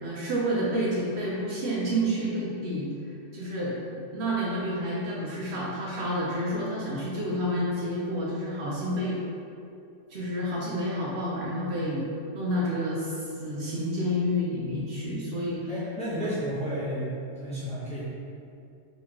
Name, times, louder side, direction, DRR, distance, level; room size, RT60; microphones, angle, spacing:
voice 1, 0.0-2.9 3.3-9.2 10.1-12.0 12.3-15.7, equal, 65° right, -5 dB, 0.8 m, -29 dB
voice 2, 15.7-18.0, equal, 5° left, -10 dB, 0.6 m, -32 dB
3.9 x 3.0 x 2.9 m, 2.5 s
omnidirectional pair, 1.4 m